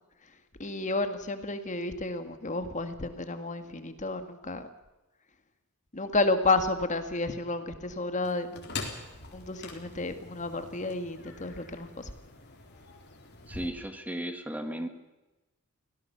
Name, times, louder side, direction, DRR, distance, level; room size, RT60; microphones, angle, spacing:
voice 1, 0.6-4.7 5.9-8.7 9.3-12.1, left 2 dB, 35° left, 8 dB, 1.8 m, -31 dB
sound 1, 8.2-13.7, left 3 dB, 50° left, 4.0 m, -43 dB
voice 2, 13.5-14.9, right 1 dB, 5° right, 7 dB, 1.7 m, -35 dB
25.5 x 17.5 x 6.9 m, 1.1 s
head